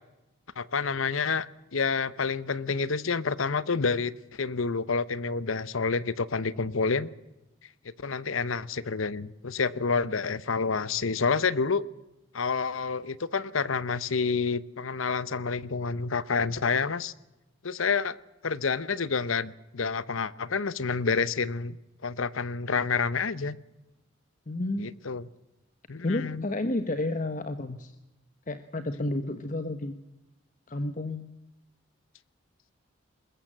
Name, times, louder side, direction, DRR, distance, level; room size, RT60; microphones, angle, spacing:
voice 1, 0.6-1.5 1.7-7.1 8.0-11.8 12.3-17.1 17.6-18.2 18.4-21.8 22.0-23.6 24.8-25.3 25.9-26.5, left 5 dB, 85° left, 18 dB, 0.9 m, -28 dB
voice 2, 24.5-25.0 26.0-28.0 28.5-30.0 30.7-31.3, left 2 dB, 40° left, 10 dB, 1.0 m, -31 dB
21.0 x 21.0 x 7.5 m, 0.98 s
head